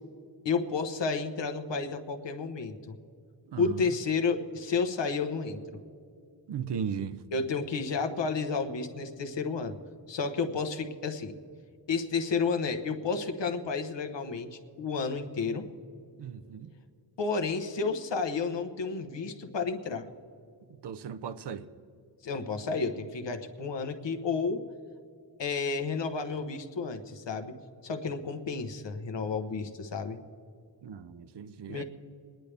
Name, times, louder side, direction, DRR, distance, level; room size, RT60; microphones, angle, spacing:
voice 1, 0.4-3.0 3.6-5.8 7.3-9.8 10.1-11.4 11.9-15.7 17.2-20.1 22.2-24.6 25.4-27.5 27.8-30.2 31.7-31.8, left 4 dB, 75° left, 1.1 m, -31 dB
voice 2, 3.5-3.8 6.5-7.2 16.2-16.7 20.8-21.7 30.8-31.8, right 7 dB, 65° right, 0.7 m, -36 dB
24.0 x 10.5 x 3.4 m
wide cardioid pair, 135°, 44 cm